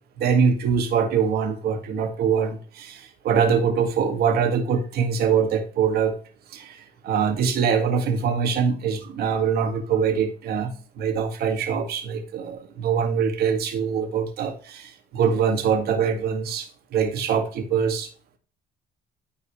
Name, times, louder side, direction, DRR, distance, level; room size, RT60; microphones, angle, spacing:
voice 1, 0.2-6.2 6.5-10.7 11.0-16.7 16.9-18.1, right 6 dB, 70° right, 6 dB, 1.9 m, -23 dB
13.0 x 4.6 x 3.2 m, 0.39 s
cardioid pair, 110°, 17 cm